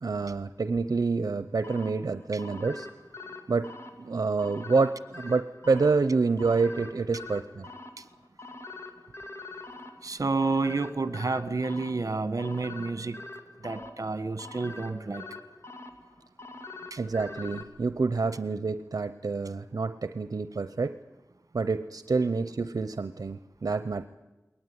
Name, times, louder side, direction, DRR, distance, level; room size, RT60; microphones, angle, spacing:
voice 1, 0.0-2.9 3.5-3.7 4.0-7.7 17.0-21.0 21.5-24.1, right 4 dB, 80° right, 12 dB, 0.7 m, -27 dB
sound 1, 1.6-17.6, left 3 dB, 45° left, 2.4 m, -44 dB
voice 2, 10.0-13.2 13.6-15.2 16.9-17.0, right 3 dB, 65° right, 13 dB, 1.4 m, -30 dB
21.5 x 19.0 x 9.6 m, 1.1 s
wide cardioid pair, 70°, 6 cm